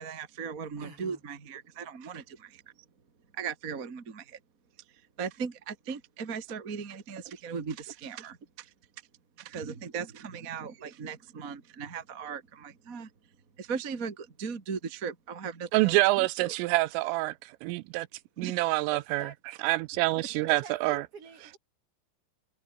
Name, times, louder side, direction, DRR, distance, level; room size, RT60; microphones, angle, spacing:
voice 1, 0.0-2.6 3.3-4.4 5.2-8.7 9.4-13.1 13.6-16.5 18.4-18.6, right 6 dB, 45° right, 1.0 m, -38 dB
voice 2, 0.8-1.2 18.9-19.3 20.5-21.6, right 5 dB, 30° right, 4.7 m, -47 dB
voice 3, 15.7-18.1 18.4-19.3 19.6-21.0, right 20 dB, 85° right, 3.2 m, -26 dB
omnidirectional pair, 5.9 m